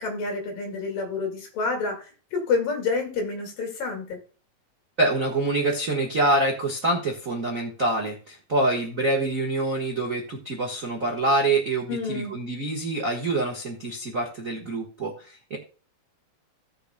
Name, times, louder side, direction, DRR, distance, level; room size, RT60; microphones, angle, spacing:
voice 1, 0.0-2.0 2.3-4.2 11.9-12.3, left 4 dB, 85° left, 2 dB, 3.8 m, -28 dB
voice 2, 5.0-15.6, right 2 dB, 85° right, 0 dB, 0.7 m, -26 dB
17.0 x 6.8 x 2.2 m, 0.37 s
omnidirectional pair, 3.9 m